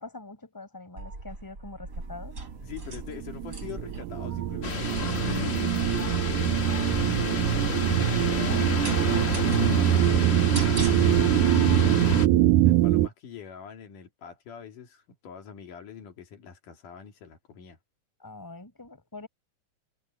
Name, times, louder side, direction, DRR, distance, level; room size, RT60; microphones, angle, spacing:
voice 1, 0.0-2.3 18.2-19.3, left 3 dB, 5° left, 4.5 m, -44 dB
sound 1, 1.0-11.5, right 2 dB, 25° right, 5.5 m, -40 dB
voice 2, 2.6-10.1 10.9-12.0 12.7-17.8, left 8 dB, 80° left, 4.2 m, -44 dB
sound 2, 2.9-13.1, right 14 dB, 85° right, 2.3 m, -24 dB
sound 3, 4.6-12.3, left 3 dB, 60° left, 0.6 m, -30 dB
omnidirectional pair, 3.6 m